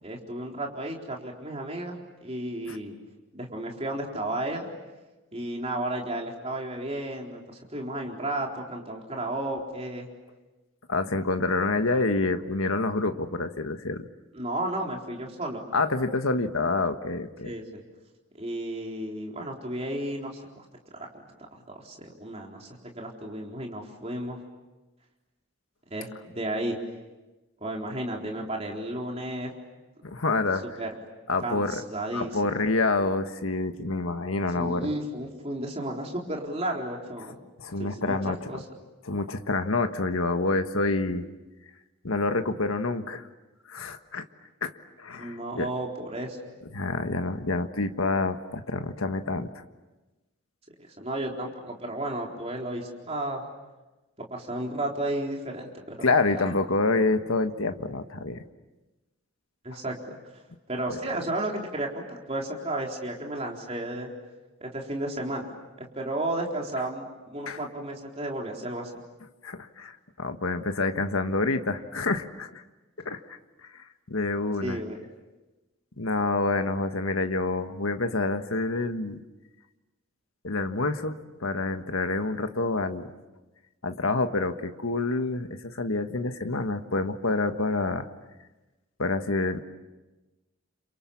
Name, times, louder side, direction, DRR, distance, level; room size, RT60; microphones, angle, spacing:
voice 1, 0.0-2.9 3.3-4.7 5.3-10.1 14.3-15.7 17.4-17.8 18.3-20.6 21.0-21.2 21.7-22.7 22.9-24.4 25.9-26.8 27.6-29.5 30.8-30.9 31.4-32.4 34.5-37.4 37.8-38.6 45.2-46.4 50.8-53.5 54.3-56.4 59.6-60.1 60.7-64.1 64.6-65.4 65.8-68.9 74.6-75.0, right 1 dB, 30° right, 0 dB, 4.1 m, -33 dB
voice 2, 10.9-14.1 15.7-17.5 30.0-30.6 31.3-31.7 32.1-34.9 37.6-38.4 39.1-41.3 42.0-43.2 43.7-44.2 44.6-44.7 45.0-45.7 46.7-49.5 56.0-58.4 59.7-59.8 60.9-61.0 67.5-67.6 69.4-72.6 73.0-73.4 73.7-74.8 76.0-79.2 80.4-83.1 83.8-88.1 89.0-89.6, left 3 dB, 75° left, 8 dB, 1.4 m, -27 dB
30.0 x 27.5 x 7.2 m, 1.1 s
head